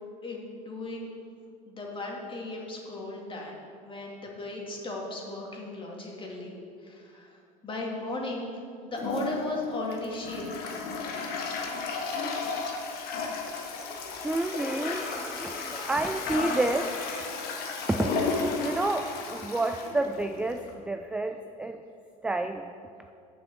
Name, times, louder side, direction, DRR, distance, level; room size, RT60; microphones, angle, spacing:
voice 1, 0.2-1.1 1.7-3.6 3.8-11.0, left 2 dB, 25° left, -1 dB, 2.4 m, -36 dB
Toilet flush, 8.9-20.7, left 4 dB, 55° left, 1.5 m, -33 dB
voice 2, 13.2-13.6 14.2-17.3 17.9-18.1 18.6-21.8 22.2-22.7 23.1-23.2, right 2 dB, 5° right, 7 dB, 0.4 m, -30 dB
7.1 x 6.2 x 7.1 m, 2.4 s
hypercardioid pair, 80°, 19 cm